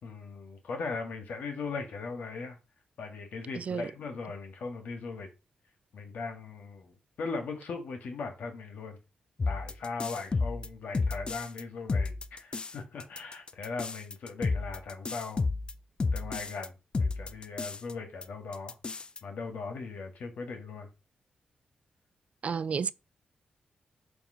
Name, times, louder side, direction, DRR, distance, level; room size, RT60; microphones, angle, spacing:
voice 1, 0.0-2.6 3.0-5.3 5.9-9.0 9.5-15.4 16.1-18.7 19.2-20.9, left 4 dB, 80° left, 1.6 m, -39 dB
voice 2, 3.6-3.9 22.4-22.9, right 6 dB, 55° right, 0.3 m, -31 dB
sound 1, 9.4-11.6 11.9-12.7 13.0-16.7 16.9-17.9 18.2-18.3 18.5-19.2, left 3 dB, 35° left, 0.4 m, -31 dB
7.0 x 2.9 x 5.6 m
wide cardioid pair, 105°, 3 cm